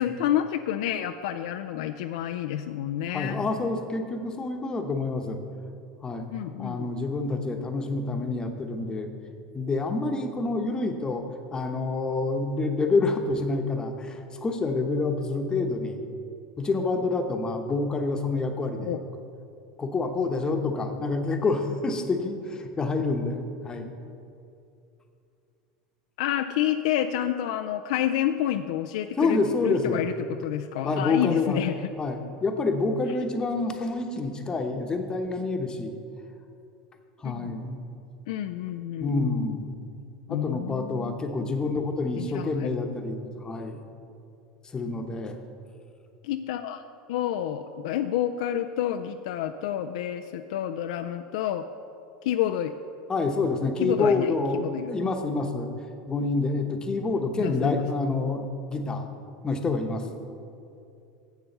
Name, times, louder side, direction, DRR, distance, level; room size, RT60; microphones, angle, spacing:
voice 1, 0.0-3.4 6.3-6.8 18.8-19.0 26.2-31.7 37.2-37.5 38.3-39.6 40.3-41.5 42.2-42.7 46.2-46.8 47.1-51.7 52.2-52.7 53.8-54.9 57.4-57.9, left 11 dB, 75° left, 7 dB, 0.4 m, -29 dB
voice 2, 3.1-5.4 6.0-6.3 6.6-9.1 9.5-16.0 16.6-18.9 19.8-23.9 29.2-30.0 30.8-31.6 32.0-35.9 37.2-37.8 39.0-39.7 40.3-43.8 44.6-45.4 53.1-55.7 56.1-59.1 59.4-60.1, left 3 dB, 20° left, 5 dB, 1.0 m, -27 dB
7.5 x 7.1 x 6.6 m, 2.6 s
hypercardioid pair, 100°, 3 cm